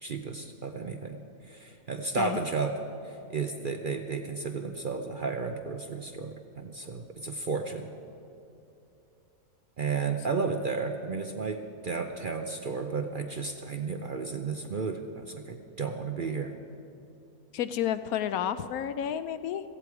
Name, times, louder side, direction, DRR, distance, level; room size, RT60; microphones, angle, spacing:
voice 1, 0.0-7.9 9.8-16.6, right 4 dB, 50° right, 5 dB, 0.6 m, -33 dB
voice 2, 17.5-19.6, left 9 dB, 75° left, 12 dB, 1.1 m, -30 dB
17.0 x 14.5 x 4.7 m, 2.7 s
omnidirectional pair, 1.6 m